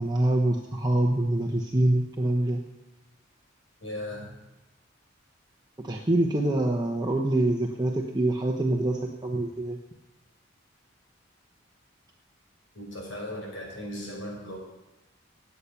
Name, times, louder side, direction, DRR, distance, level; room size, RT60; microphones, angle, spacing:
voice 1, 0.0-2.6 5.8-9.8, right 1 dB, 20° right, 1 dB, 0.9 m, -25 dB
voice 2, 3.8-4.4 12.7-14.6, left 1 dB, 75° left, -2 dB, 5.7 m, -37 dB
18.5 x 8.3 x 5.8 m, 1.0 s
head